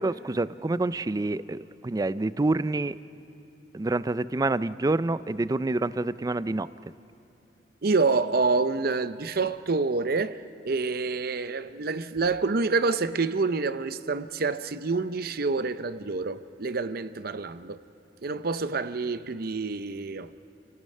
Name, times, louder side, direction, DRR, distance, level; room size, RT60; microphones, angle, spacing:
voice 1, 0.0-3.0 3.7-6.7, right 2 dB, 20° right, 0.4 m, -27 dB
voice 2, 7.8-10.4 10.6-17.8 18.2-20.3, right 4 dB, 60° right, 0.7 m, -27 dB
29.5 x 17.5 x 5.5 m
head